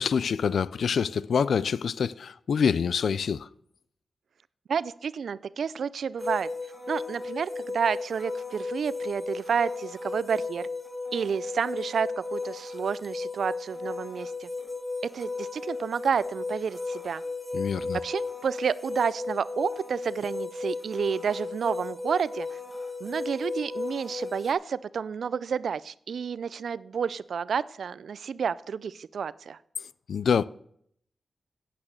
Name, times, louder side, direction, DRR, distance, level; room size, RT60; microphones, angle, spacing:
voice 1, 0.0-3.5 17.5-18.0 30.1-30.5, left 6 dB, 80° left, 0.4 m, -26 dB
voice 2, 4.7-6.5 6.9-10.7 11.1-14.5 15.0-17.2 18.0-22.6 23.0-29.6, right 6 dB, 80° right, 0.4 m, -30 dB
sound 1, 6.2-24.5, left 3 dB, 15° left, 2.4 m, -35 dB
8.8 x 8.7 x 6.4 m
cardioid pair, 45°, 0 cm